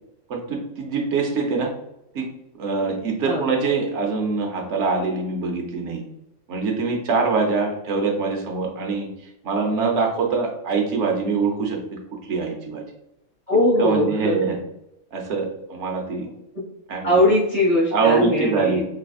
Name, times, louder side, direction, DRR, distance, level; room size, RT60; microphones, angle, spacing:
voice 1, 0.3-1.7 2.1-2.3 2.6-6.0 6.5-9.1 9.4-12.0 12.3-12.8 13.8-14.6 15.1-16.3 16.9-17.2 17.9-18.8, right 4 dB, 65° right, 1 dB, 1.1 m, -24 dB
voice 2, 13.5-14.6 17.0-18.8, left 1 dB, 35° left, -6 dB, 1.7 m, -20 dB
3.8 x 3.3 x 2.3 m, 0.82 s
omnidirectional pair, 1.4 m